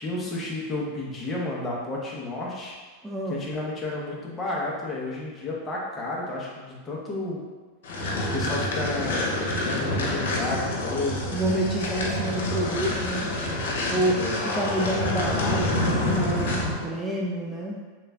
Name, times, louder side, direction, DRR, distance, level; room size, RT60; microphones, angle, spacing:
voice 1, 0.0-2.7 3.3-7.4 8.3-9.3 9.6-11.4 14.2-14.4, left 2 dB, 15° left, -4 dB, 0.7 m, -31 dB
voice 2, 3.0-3.4 11.3-13.3 13.9-17.8, right 1 dB, 5° right, -2 dB, 0.3 m, -28 dB
sound 1, 7.8-16.8, left 1 dB, 85° left, 0.7 m, -27 dB
3.3 x 2.4 x 3.2 m, 1.4 s
supercardioid pair, 145°, 0 cm